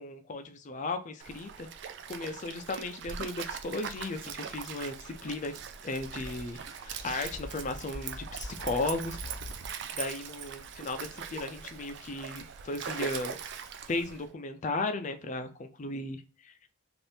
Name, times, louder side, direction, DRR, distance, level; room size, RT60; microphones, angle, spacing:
voice 1, 0.0-1.7 2.1-9.2 9.9-13.4 13.9-16.7, left 2 dB, 35° left, 0.4 m, -36 dB
Stream, 1.2-14.3, right 7 dB, 55° right, 0.4 m, -41 dB
sound 1, 4.0-9.8, left 1 dB, 75° left, 0.8 m, -46 dB
2.7 x 2.5 x 3.3 m
head